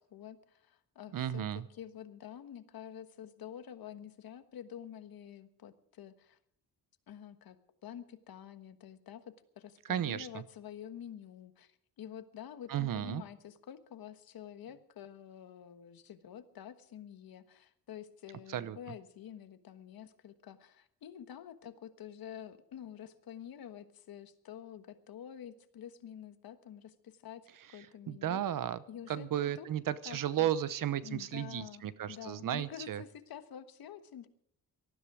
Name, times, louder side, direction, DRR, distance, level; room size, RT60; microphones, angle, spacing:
voice 1, 0.0-1.4 1.8-6.4 7.1-7.6 7.8-9.2 9.6-28.4 28.9-29.7 30.1-30.5 31.0-34.3, left 9 dB, 65° left, 10 dB, 1.4 m, -48 dB
voice 2, 1.1-1.7 9.8-10.4 12.7-13.2 18.5-18.8 28.1-33.0, right 11 dB, 55° right, 16 dB, 0.9 m, -34 dB
18.5 x 13.5 x 4.9 m, 0.68 s
cardioid pair, 135°, 38 cm